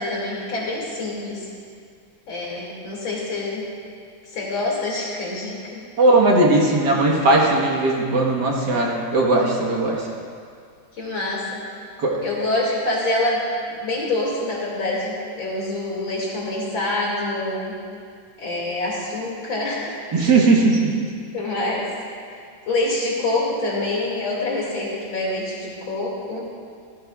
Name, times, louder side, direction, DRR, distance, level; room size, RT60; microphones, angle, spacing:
voice 1, 0.0-1.5 2.3-3.6 4.3-5.8 11.0-11.6 12.2-17.8 18.4-20.0 21.3-21.9 22.7-26.5, left 2 dB, 80° left, -4 dB, 3.1 m, -26 dB
voice 2, 6.0-10.0 12.0-12.2 20.1-21.1, right 2 dB, 65° right, -2 dB, 2.0 m, -18 dB
15.0 x 14.0 x 2.4 m, 2.2 s
omnidirectional pair, 2.1 m